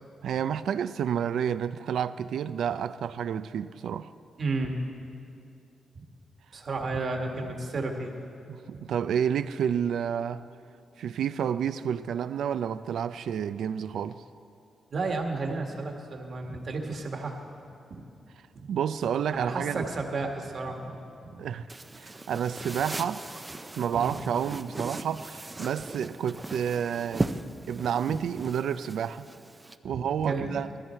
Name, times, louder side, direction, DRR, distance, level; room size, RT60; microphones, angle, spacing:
voice 1, 0.2-4.1 8.5-10.5 11.0-14.2 18.7-19.8 21.4-21.7 21.9-23.2 23.8-27.3 27.7-29.3 29.8-30.7, right 8 dB, 80° right, 0.4 m, -30 dB
voice 2, 4.4-4.8 6.5-8.1 8.7-8.8 14.9-17.4 17.9-18.0 18.5-18.7 19.3-21.5 23.9-24.2 29.8-30.6, right 3 dB, 45° right, 1.7 m, -32 dB
sound 1, 21.7-29.8, right 2 dB, 15° right, 0.5 m, -37 dB
19.5 x 14.5 x 4.5 m
wide cardioid pair, 150°, 0 cm